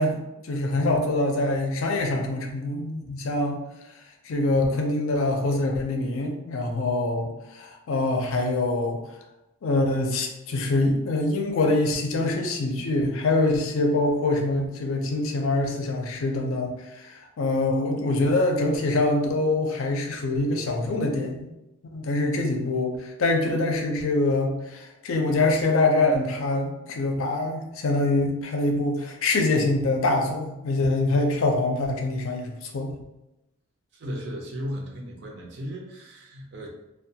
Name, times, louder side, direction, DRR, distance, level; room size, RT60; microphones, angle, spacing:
voice 1, 0.0-3.6 4.2-9.0 9.6-21.4 21.9-32.9, left 2 dB, 70° left, 2 dB, 0.4 m, -24 dB
voice 2, 33.9-36.7, equal, 55° right, 0 dB, 0.5 m, -35 dB
2.2 x 2.1 x 2.7 m, 0.94 s
head